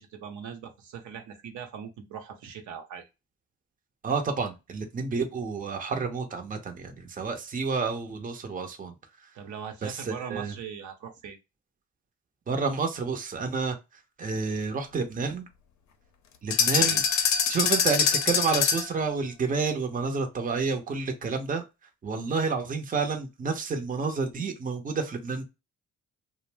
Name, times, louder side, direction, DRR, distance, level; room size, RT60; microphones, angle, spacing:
voice 1, 0.0-3.1 9.3-11.4 16.8-17.0, right 7 dB, 75° right, 4 dB, 0.8 m, -40 dB
voice 2, 4.0-8.9 9.2-9.3 9.8-10.5 12.5-13.8 14.2-15.5 16.4-17.0 17.5-21.6 22.0-25.4, right 4 dB, 30° right, 5 dB, 0.6 m, -29 dB
sound 1, 16.5-19.0, left 7 dB, 70° left, 0.5 m, -24 dB
2.6 x 2.0 x 3.2 m, 0.24 s
cardioid pair, 90°, 30 cm